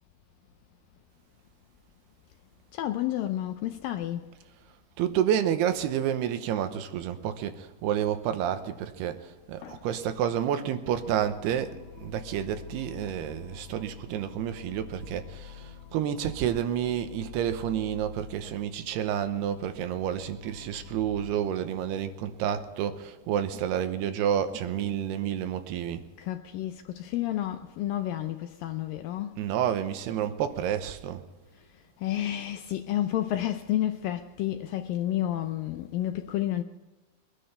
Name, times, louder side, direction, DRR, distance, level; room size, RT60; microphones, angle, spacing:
voice 1, 2.7-4.3 9.6-9.8 26.2-29.3 32.0-36.6, left 13 dB, 80° left, 2.0 m, -30 dB
voice 2, 5.0-26.1 29.4-31.2, right 9 dB, 85° right, 3.0 m, -30 dB
sound 1, 10.9-21.3, left 8 dB, 65° left, 3.3 m, -47 dB
22.5 x 10.0 x 4.3 m
omnidirectional pair, 4.6 m